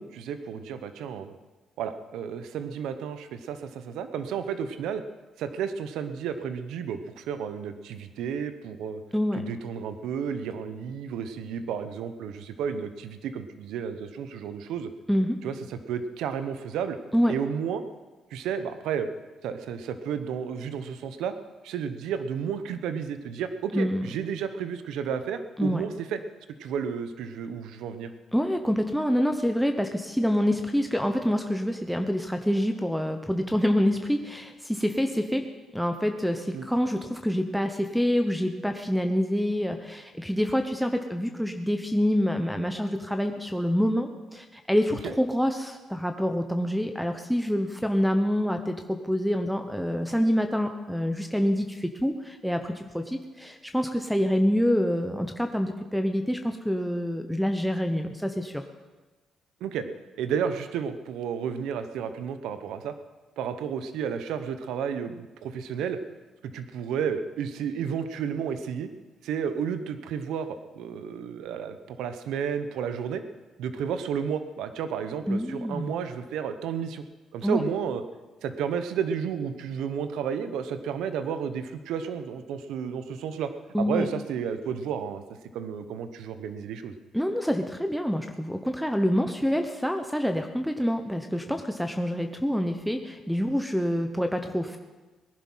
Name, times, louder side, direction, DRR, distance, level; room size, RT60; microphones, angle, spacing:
voice 1, 0.0-1.3 1.8-5.0 5.4-9.0 9.3-14.9 15.4-17.0 17.3-17.8 18.3-19.1 19.4-21.3 21.6-26.2 26.6-28.1 36.5-36.7 45.0-45.1 59.6-59.8 60.2-62.9 63.4-66.0 66.4-68.9 69.2-73.2 73.6-77.0 77.3-78.0 78.4-83.5 83.8-85.2 85.5-86.9, right 7 dB, 85° right, 10 dB, 1.0 m, -32 dB
voice 2, 23.7-24.0 25.6-25.8 28.3-35.5 35.7-58.6 75.3-75.9 77.4-77.6 83.7-84.1 87.1-94.8, equal, ahead, 6 dB, 1.0 m, -26 dB
18.5 x 11.0 x 5.7 m, 1.2 s
cardioid pair, 90°, 0 cm